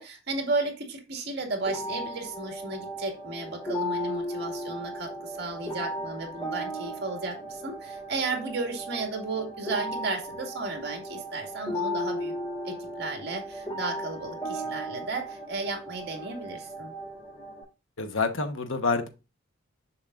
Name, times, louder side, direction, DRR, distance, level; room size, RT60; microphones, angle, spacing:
voice 1, 0.0-12.3 12.6-16.9, right 3 dB, 50° right, 3 dB, 2.0 m, -34 dB
sound 1, 1.6-17.6, equal, 20° left, 3.8 m, -36 dB
voice 2, 18.0-19.1, left 4 dB, 65° left, 7 dB, 1.1 m, -27 dB
7.1 x 6.3 x 2.5 m, 0.28 s
head